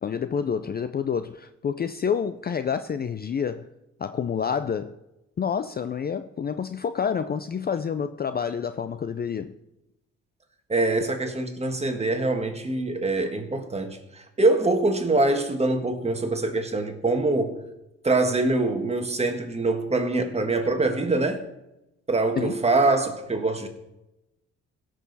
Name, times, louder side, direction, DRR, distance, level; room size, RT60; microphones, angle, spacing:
voice 1, 0.0-3.7 4.0-4.9 5.4-9.5 22.4-22.6, left 7 dB, 30° left, 0.5 m, -28 dB
voice 2, 10.7-17.6 18.0-21.4 22.1-23.7, right 2 dB, 20° right, 1.6 m, -24 dB
17.0 x 6.4 x 4.1 m
cardioid pair, 90°, 30 cm